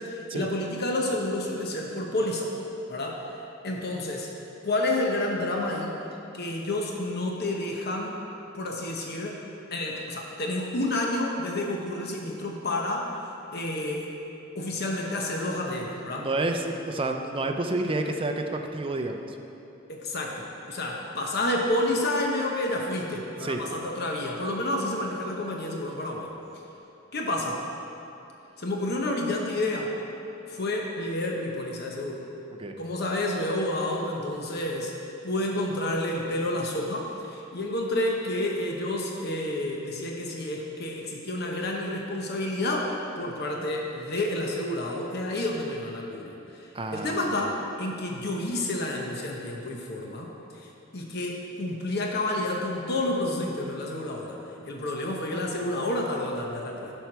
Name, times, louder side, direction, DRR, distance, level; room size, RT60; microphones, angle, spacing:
voice 1, 0.0-2.5 2.9-3.2 3.6-4.3 4.6-5.9 6.3-8.2 8.5-9.4 9.7-13.1 13.5-14.1 14.5-16.3 19.9-26.3 27.1-27.6 28.6-29.9 30.5-32.2 32.8-34.9 35.2-54.4 54.6-56.9, left 1 dB, 55° left, 0 dB, 0.9 m, -30 dB
voice 2, 16.2-19.4 23.4-23.6 32.6-32.7 46.7-47.4, right 2 dB, 25° right, 4 dB, 0.5 m, -29 dB
11.0 x 4.6 x 5.9 m, 2.8 s
head